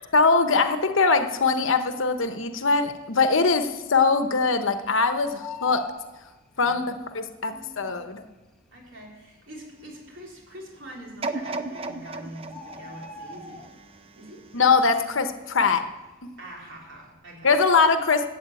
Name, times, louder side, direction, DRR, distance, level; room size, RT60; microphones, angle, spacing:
voice 1, 0.1-5.9 6.6-6.9 7.1-8.2 14.5-15.9 17.4-18.3, left 4 dB, 70° left, 8 dB, 1.0 m, -22 dB
Bird, 2.5-3.0 3.4-3.5 3.7-4.9 5.2-7.0 7.9-8.0 8.6-8.7 8.9-9.0 9.6-10.1 11.1-11.2 11.5-11.6 11.8-14.1 14.5-14.8 15.1-16.5 16.8-17.1, left 4 dB, 5° left, 1.0 m, -43 dB
voice 2, 6.5-7.1 7.5-8.0 8.7-13.7 14.1-14.5 16.4-17.5, right 1 dB, 60° right, -2 dB, 4.0 m, -44 dB
sound 1, 11.2-14.3 14.8-14.9, right 3 dB, 25° right, 0.7 m, -35 dB
13.0 x 8.1 x 8.3 m, 1.1 s
head